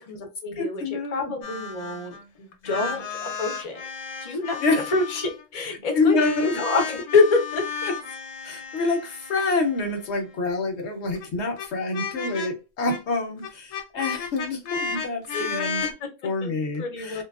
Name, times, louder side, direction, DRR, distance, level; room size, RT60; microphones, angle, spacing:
voice 1, 0.0-3.8 4.2-7.9 15.3-15.5 15.8-16.5 16.8-17.2, left 3 dB, 35° left, 2 dB, 0.7 m, -27 dB
voice 2, 0.6-1.3 2.7-2.8 4.6-4.8 5.9-6.6 7.8-7.9 8.4-15.9 16.2-17.2, left 3 dB, 65° left, 4 dB, 0.9 m, -27 dB
sound 1, 1.4-2.2 2.5-5.4 6.2-10.4 11.2-11.3 11.6-11.7 11.9-12.5 12.9-13.0 13.4-15.9, left 5 dB, 85° left, 1.1 m, -34 dB
3.0 x 2.2 x 2.3 m, 0.30 s
omnidirectional pair, 1.3 m